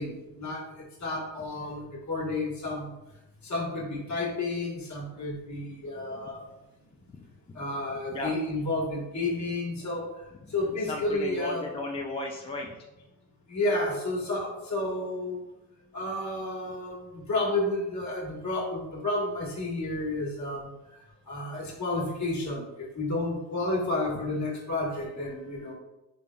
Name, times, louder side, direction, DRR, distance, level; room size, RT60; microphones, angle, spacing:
voice 1, 0.0-2.9 3.4-6.4 7.5-10.1 10.5-11.7 13.5-15.4 15.9-20.7 21.3-25.7, left 2 dB, 40° left, -3 dB, 1.5 m, -31 dB
voice 2, 10.9-12.7, left 2 dB, 15° left, 0 dB, 0.4 m, -34 dB
3.8 x 3.4 x 2.3 m, 0.95 s
hypercardioid pair, 60°, 46 cm